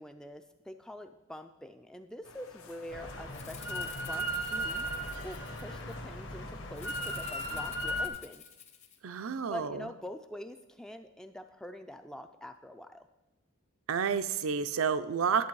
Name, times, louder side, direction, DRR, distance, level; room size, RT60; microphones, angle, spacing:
voice 1, 0.0-4.9 5.2-8.4 9.2-13.1, equal, 5° left, 8 dB, 0.3 m, -45 dB
sound 1, 2.2-7.7, left 4 dB, 80° left, 0.9 m, -55 dB
Drill, 2.9-8.1, equal, 55° left, 1.2 m, -36 dB
Rattle (instrument), 3.3-6.0 6.8-9.0, left 8 dB, 30° left, 0.8 m, -50 dB
voice 2, 9.0-9.8 13.9-15.5, right 6 dB, 75° right, 11 dB, 0.5 m, -30 dB
11.0 x 7.6 x 4.7 m, 1.1 s
head